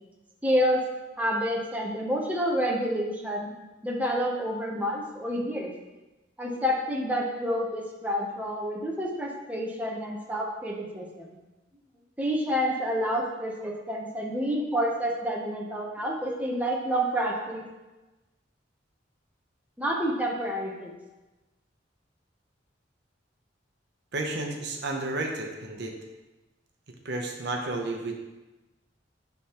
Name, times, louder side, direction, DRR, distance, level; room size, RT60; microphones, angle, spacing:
voice 1, 0.4-0.8 1.2-3.5 3.8-5.7 6.4-11.3 12.2-17.6 19.8-20.9, equal, 10° right, -2 dB, 0.7 m, -28 dB
voice 2, 24.1-26.0 27.0-28.2, right 2 dB, 60° right, 2 dB, 0.7 m, -32 dB
9.8 x 3.4 x 2.9 m, 1.1 s
head